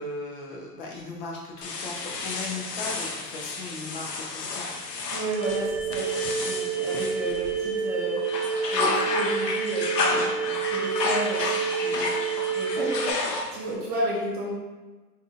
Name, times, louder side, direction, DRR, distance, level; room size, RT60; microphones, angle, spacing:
voice 1, 0.0-4.7 12.7-12.9, left 3 dB, 35° left, -2 dB, 0.5 m, -37 dB
sound 1, 1.6-7.8 8.2-13.7, left 3 dB, 90° left, 0.6 m, -31 dB
voice 2, 5.1-12.2 12.5-13.2 13.5-14.5, right 1 dB, 20° right, -5 dB, 0.6 m, -32 dB
sound 2, 5.3-13.1, right 6 dB, 85° right, 0.8 m, -29 dB
3.5 x 2.7 x 2.4 m, 1.2 s
hypercardioid pair, 110°, 47 cm